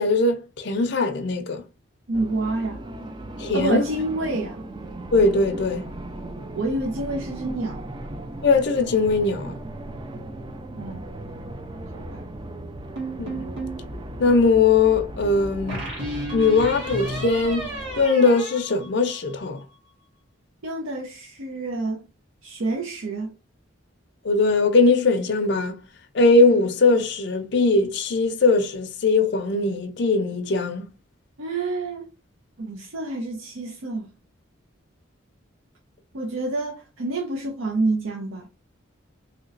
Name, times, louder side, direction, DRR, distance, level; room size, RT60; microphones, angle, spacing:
voice 1, 0.0-1.6 3.4-3.9 5.1-5.8 8.4-9.6 13.2-13.4 14.2-15.9 16.3-17.7 18.0-19.6 24.2-25.8 26.1-30.9, left 3 dB, 60° left, 0.5 m, -20 dB
sound 1, 2.1-18.1, right 1 dB, 20° right, 0.3 m, -37 dB
voice 2, 2.1-2.8 3.5-4.6 6.5-7.9 10.7-11.1 11.9-12.3 20.6-22.1 22.4-23.4 31.4-32.1 32.6-34.1 36.1-38.5, right 2 dB, 80° right, 0.6 m, -28 dB
sound 2, 13.0-13.8 15.7-19.5, right 1 dB, 60° right, 1.5 m, -33 dB
3.1 x 2.9 x 2.5 m
head